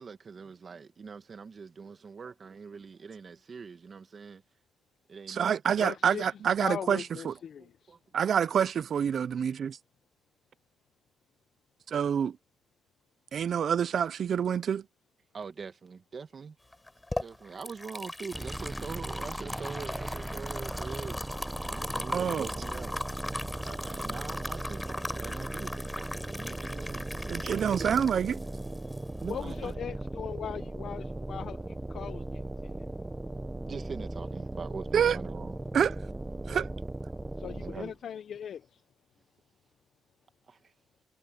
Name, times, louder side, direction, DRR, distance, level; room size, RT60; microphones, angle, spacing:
voice 1, 0.0-4.4 5.1-5.5 7.6-8.0 15.3-16.6 17.2-21.2 21.7-23.4 23.6-28.0 29.2-29.8 33.6-35.6 37.6-37.9 40.5-40.7, right 5 dB, 40° right, 1.7 m, -43 dB
voice 2, 5.3-7.4 8.1-9.8 11.9-12.4 13.3-14.8 22.1-22.5 27.3-28.4 34.9-35.2 35.7-36.0 36.5-36.7, right 8 dB, 55° right, 0.6 m, -27 dB
voice 3, 5.8-6.2 6.6-7.9 29.3-32.7 37.4-38.7, left 8 dB, 60° left, 0.9 m, -39 dB
sound 1, 16.7-29.7, left 1 dB, 10° left, 5.6 m, -39 dB
sound 2, 18.3-37.9, right 2 dB, 15° right, 1.3 m, -38 dB
cardioid pair, 90°, 0 cm